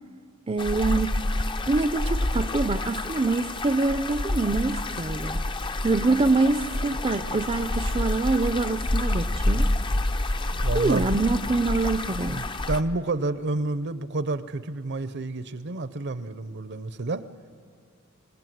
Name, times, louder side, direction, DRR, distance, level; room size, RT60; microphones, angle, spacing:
voice 1, 0.5-1.1 1.7-5.4 5.8-9.7 10.7-12.4, right 3 dB, 25° right, 10 dB, 0.5 m, -25 dB
sound 1, 0.6-12.8, left 1 dB, 25° left, 0.6 m, -28 dB
voice 2, 10.5-11.1 12.3-17.2, right 2 dB, 55° right, 14 dB, 0.8 m, -29 dB
25.5 x 19.5 x 9.3 m, 2.2 s
head